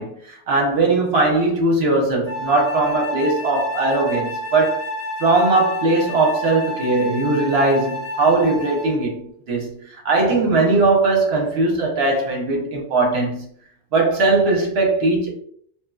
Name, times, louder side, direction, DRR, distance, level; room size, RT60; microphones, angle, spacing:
voice 1, 0.0-4.8 5.2-13.5 13.9-15.3, right 3 dB, 65° right, 1.0 m, -19 dB
Wind instrument woodwind instrument, 2.3-9.0, left 1 dB, 25° left, 1.0 m, -29 dB
2.9 x 2.7 x 2.3 m
omnidirectional pair, 1.2 m